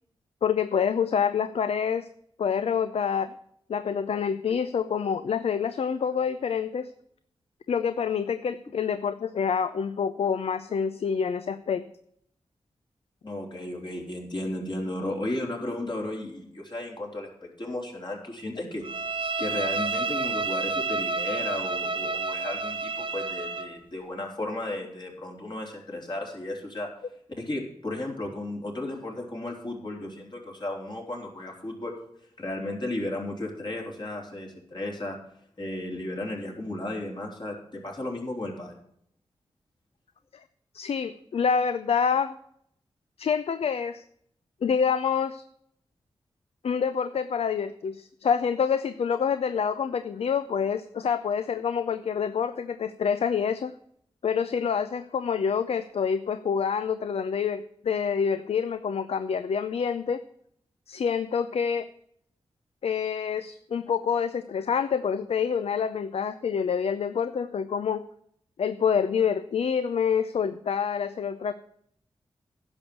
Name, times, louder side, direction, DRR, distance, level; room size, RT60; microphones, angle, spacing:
voice 1, 0.4-2.1 2.4-3.3 3.7-6.9 7.7-11.8 40.7-42.3 43.2-44.0 44.6-45.4 46.6-53.7 54.2-60.2 60.9-61.9 62.8-68.0 68.6-71.5, left 7 dB, 75° left, 12 dB, 0.5 m, -27 dB
voice 2, 13.2-18.9 19.4-26.9 27.4-31.9 32.4-35.2 35.6-38.8, left 1 dB, 45° left, 0 dB, 3.6 m, -34 dB
Bowed string instrument, 18.8-23.7, right 4 dB, 55° right, 1.1 m, -30 dB
10.5 x 6.2 x 8.4 m, 0.69 s
cardioid pair, 50°, 10 cm